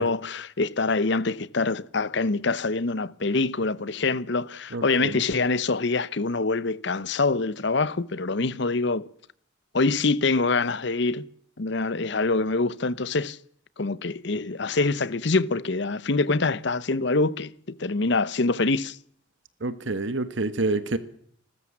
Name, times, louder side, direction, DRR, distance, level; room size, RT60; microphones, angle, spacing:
voice 1, 0.0-9.1 9.7-11.3 11.6-13.4 13.8-19.0, left 3 dB, 60° left, 0.8 m, -25 dB
voice 2, 4.7-5.2 19.6-21.0, right 2 dB, 65° right, 1.4 m, -28 dB
29.0 x 13.5 x 7.3 m
head